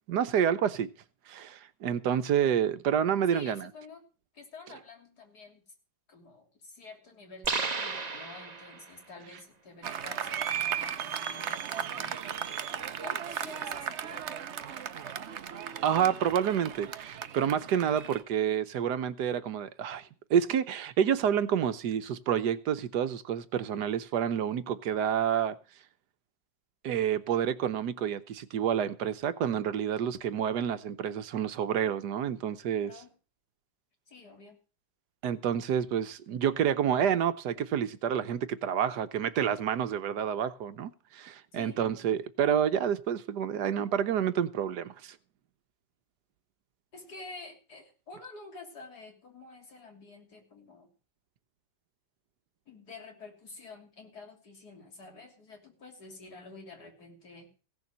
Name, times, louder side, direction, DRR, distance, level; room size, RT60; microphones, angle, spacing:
voice 1, 0.1-0.9 1.3-3.7 15.8-20.0 20.3-25.6 26.8-32.9 35.2-45.1, right 9 dB, 70° right, 1.4 m, -29 dB
voice 2, 3.3-4.0 4.3-5.6 6.1-12.3 13.0-14.5 32.8-33.1 34.1-34.6 41.5-41.8 46.9-50.9 52.7-57.5, left 3 dB, 60° left, 3.6 m, -49 dB
sound 1, 7.4-9.0, right 4 dB, 30° right, 1.0 m, -33 dB
Applause, 9.8-18.2, right 8 dB, 50° right, 0.9 m, -36 dB
16.5 x 6.8 x 7.3 m
omnidirectional pair, 1.9 m